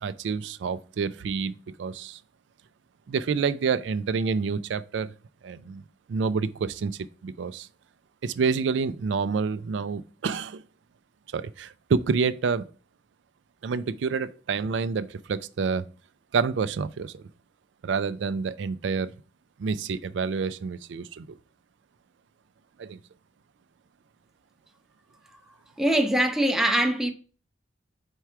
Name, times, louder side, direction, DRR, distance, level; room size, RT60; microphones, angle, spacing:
voice 1, 0.0-2.2 3.1-5.1 5.4-5.8 6.1-7.7 8.2-10.6 11.3-12.7 13.6-15.9 16.3-17.3 17.8-19.1 19.6-21.4 22.8-23.0, right 5 dB, 80° right, 0.4 m, -28 dB
voice 2, 25.8-27.1, right 1 dB, ahead, 0.7 m, -22 dB
4.7 x 4.5 x 5.6 m
head